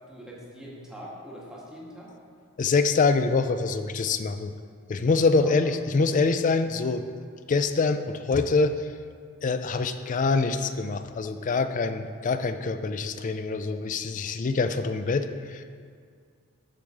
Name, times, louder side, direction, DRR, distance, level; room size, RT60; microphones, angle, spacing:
voice 1, 0.1-2.1 5.4-5.5, equal, 5° right, -5 dB, 1.5 m, -43 dB
voice 2, 2.6-4.5 4.9-7.0 7.5-8.9 9.4-15.6, left 4 dB, 35° left, 10 dB, 0.4 m, -25 dB
13.0 x 4.9 x 3.6 m, 2.1 s
head